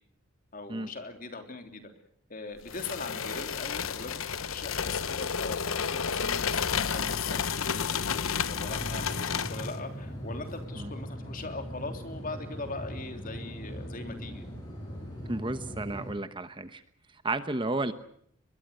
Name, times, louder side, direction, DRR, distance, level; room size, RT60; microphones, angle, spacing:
voice 1, 0.5-1.9 2.3-14.4, left 3 dB, 40° left, 6 dB, 3.2 m, -41 dB
sound 1, 2.7-9.8, left 6 dB, 85° left, 1.0 m, -31 dB
sound 2, 8.7-16.1, equal, 20° left, 7.4 m, -40 dB
voice 2, 15.3-16.8 17.1-17.9, right 2 dB, 25° right, 11 dB, 1.0 m, -32 dB
23.0 x 22.0 x 8.1 m, 0.66 s
head